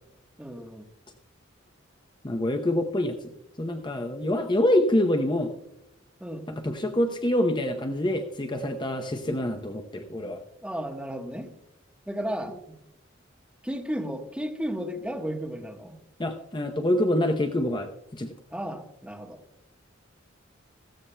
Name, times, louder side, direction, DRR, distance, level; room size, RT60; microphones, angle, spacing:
voice 1, 0.4-0.9 6.2-6.5 10.6-11.5 12.1-12.8 13.6-15.9 18.5-19.4, equal, 5° right, 2 dB, 1.2 m, -34 dB
voice 2, 2.2-3.3 3.6-5.5 6.5-10.4 16.2-18.3, left 1 dB, 25° left, 5 dB, 0.7 m, -26 dB
17.0 x 14.5 x 2.2 m, 0.89 s
head